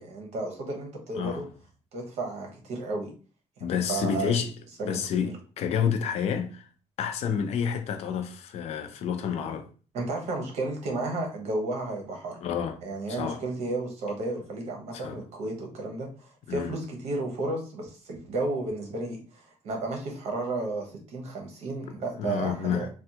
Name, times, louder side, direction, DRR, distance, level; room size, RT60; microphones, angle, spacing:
voice 1, 0.0-1.5 1.9-3.1 3.6-4.3 4.8-5.3 9.9-12.4 12.8-22.9, right 2 dB, 65° right, 0.9 m, -33 dB
voice 2, 3.6-4.5 4.8-6.6 7.0-9.7 12.4-12.8 13.1-13.4 14.9-15.2 16.5-16.8 22.2-22.9, left 7 dB, 60° left, 0.4 m, -29 dB
3.3 x 2.2 x 2.8 m
cardioid pair, 180°, 12 cm